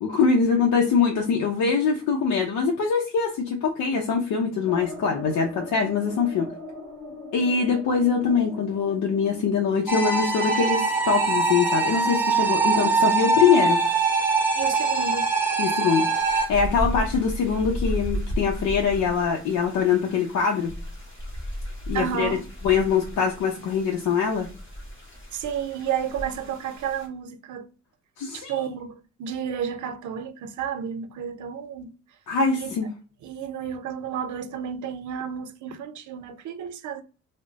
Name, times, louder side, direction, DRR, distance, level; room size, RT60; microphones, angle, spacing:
voice 1, 0.0-6.5 7.3-13.8 15.6-20.8 21.9-22.3 22.6-24.5 28.2-28.5 32.3-32.9, left 6 dB, 75° left, 0.7 m, -23 dB
sound 1, 4.7-13.2 13.5-13.6 13.9-14.0, left 3 dB, 25° left, 1.5 m, -41 dB
sound 2, 9.9-16.5, right 4 dB, 5° right, 0.8 m, -23 dB
voice 2, 14.6-15.3 16.8-17.1 21.9-22.4 25.3-27.7 28.3-31.9 32.5-32.7 33.2-37.0, right 8 dB, 75° right, 0.6 m, -31 dB
sound 3, 16.1-27.1, equal, 40° left, 1.4 m, -34 dB
3.1 x 2.1 x 3.9 m
cardioid pair, 90°, 30 cm